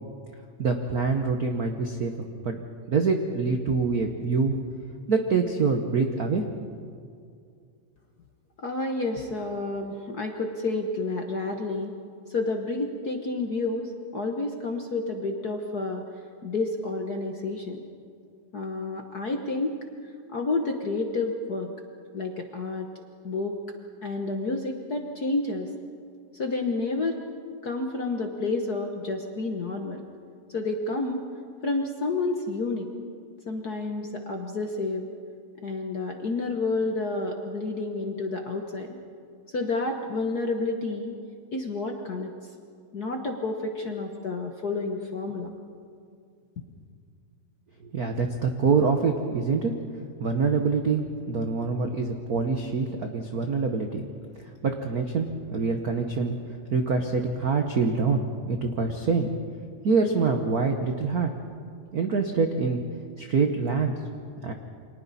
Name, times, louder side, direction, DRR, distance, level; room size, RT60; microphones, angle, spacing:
voice 1, 0.6-2.1 2.4-2.6 2.9-4.6 5.1-6.4 47.8-49.7 50.2-54.0 54.6-56.4 56.7-59.3 59.8-61.3 61.9-62.8 63.2-63.9 64.4-64.5, right 4 dB, 85° right, 4 dB, 0.8 m, -25 dB
voice 2, 8.6-11.9 12.3-16.0 16.4-17.8 18.5-19.8 20.3-21.7 22.1-22.9 23.2-23.6 24.0-25.7 26.3-27.2 27.6-30.0 30.5-31.2 31.6-32.9 33.5-35.1 35.6-39.0 39.5-41.2 41.5-42.3 42.9-45.5, left 3 dB, 55° left, 3 dB, 1.1 m, -30 dB
29.0 x 25.0 x 4.2 m, 2.3 s
omnidirectional pair, 3.3 m